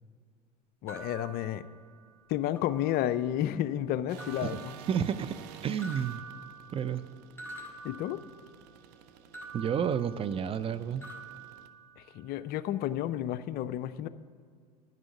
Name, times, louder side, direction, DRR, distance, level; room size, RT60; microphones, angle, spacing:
voice 1, 0.8-1.6 2.3-4.7 7.8-8.2 12.0-14.1, left 12 dB, 45° left, 13 dB, 0.5 m, -31 dB
sound 1, 0.9-2.2 2.6-3.3 4.2-5.4 5.8-8.7 9.3-10.7 11.0-12.3, right 3 dB, 10° left, 2.2 m, -48 dB
sound 2, 4.1-11.7, right 9 dB, 70° right, 0.7 m, -52 dB
voice 2, 4.9-5.4 5.6-6.2 6.7-7.0 9.5-11.0, right 8 dB, 25° right, 13 dB, 0.4 m, -30 dB
10.5 x 6.2 x 8.1 m, 2.1 s
hypercardioid pair, 90°, 21 cm